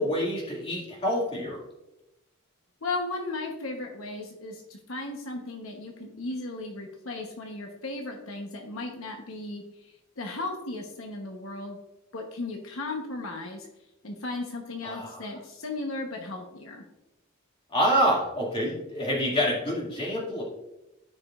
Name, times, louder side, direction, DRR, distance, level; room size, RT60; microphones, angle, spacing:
voice 1, 0.0-1.6 14.8-15.2 17.7-20.4, equal, 25° left, -3 dB, 2.2 m, -27 dB
voice 2, 2.8-9.6 10.2-11.8 12.1-13.7 14.0-16.8, left 2 dB, 75° left, 2 dB, 1.0 m, -35 dB
14.0 x 5.0 x 2.4 m, 0.95 s
head